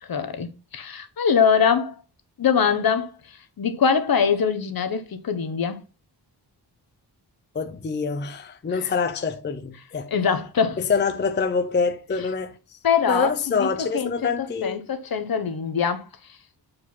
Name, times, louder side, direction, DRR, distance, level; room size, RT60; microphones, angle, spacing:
voice 1, 0.0-2.0 2.4-5.8 8.8-8.9 10.1-10.8 12.8-16.0, left 6 dB, 60° left, 1.1 m, -23 dB
voice 2, 7.5-10.1 10.8-12.8 13.1-14.8, left 5 dB, 25° left, 0.5 m, -26 dB
7.7 x 4.9 x 4.0 m
wide cardioid pair, 180°, 41 cm